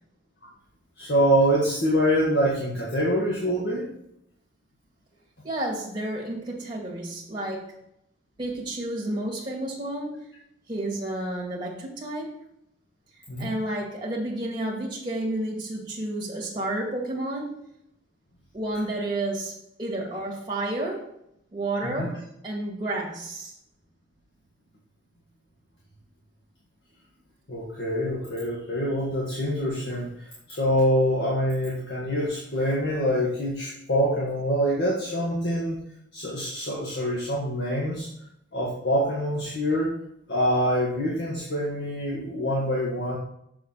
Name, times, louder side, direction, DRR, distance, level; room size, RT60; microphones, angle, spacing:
voice 1, 1.0-3.9 13.3-13.6 21.8-22.1 27.5-35.8 36.1-38.1 38.5-39.9 40.3-43.2, equal, 55° left, -5 dB, 1.7 m, -25 dB
voice 2, 5.4-7.7 8.4-10.3 10.7-12.4 13.4-17.6 18.5-19.5 19.8-21.1 21.5-22.1 22.4-23.5, right 1 dB, 20° right, -3 dB, 2.2 m, -31 dB
6.9 x 6.5 x 4.1 m, 0.75 s
head